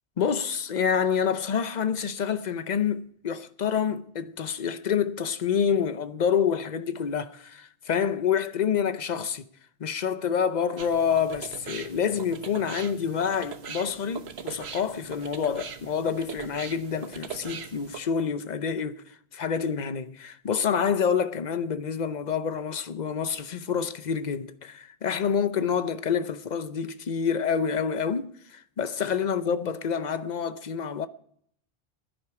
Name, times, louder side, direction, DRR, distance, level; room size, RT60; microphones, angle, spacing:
voice 1, 0.2-9.4 9.8-19.0 19.3-31.1, left 7 dB, 45° left, 0.8 m, -27 dB
sound 1, 10.8-18.0, right 6 dB, 75° right, 1.3 m, -41 dB
16.0 x 10.0 x 4.8 m
omnidirectional pair, 1.1 m